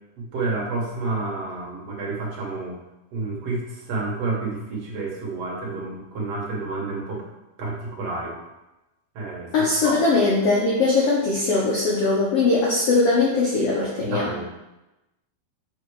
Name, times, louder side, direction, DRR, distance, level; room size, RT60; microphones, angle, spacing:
voice 1, 0.2-2.8 3.1-7.3 7.6-8.4 9.1-10.0 14.0-14.4, right 3 dB, 60° right, -3 dB, 1.9 m, -30 dB
voice 2, 9.5-14.3, left 3 dB, 85° left, -5 dB, 1.3 m, -20 dB
7.0 x 4.2 x 4.7 m, 0.98 s
omnidirectional pair, 4.2 m